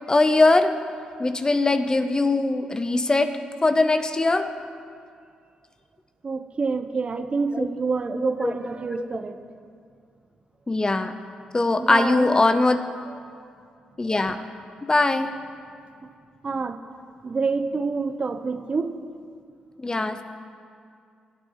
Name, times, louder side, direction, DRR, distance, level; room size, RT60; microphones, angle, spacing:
voice 1, 0.1-0.7 1.2-4.5 7.5-7.7 8.4-8.5 8.9-9.1 10.7-11.1 11.5-12.8 14.0-14.4 14.9-15.3 19.8-20.2, left 2 dB, 25° left, 10 dB, 0.9 m, -21 dB
voice 2, 6.2-9.4 11.8-12.4 13.1-13.2 16.4-16.8 17.2-19.0, right 4 dB, 45° right, 9 dB, 0.9 m, -27 dB
18.5 x 8.6 x 4.8 m, 2.3 s
supercardioid pair, 50°, 3 cm